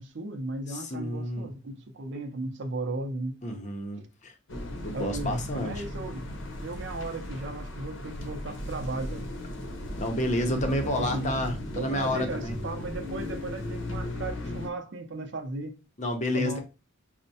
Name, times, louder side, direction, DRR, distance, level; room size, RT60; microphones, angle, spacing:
voice 1, 0.0-3.4 4.0-4.1 4.9-9.3 10.5-10.6 11.0-11.3 11.8-15.7 16.3-16.6, right 2 dB, 65° right, 0.5 m, -36 dB
voice 2, 0.7-1.5 3.4-4.3 4.8-5.8 10.0-12.6 16.0-16.6, left 1 dB, 40° left, 0.6 m, -30 dB
sound 1, 4.5-14.7, left 1 dB, 75° left, 0.7 m, -36 dB
4.4 x 2.1 x 2.7 m
head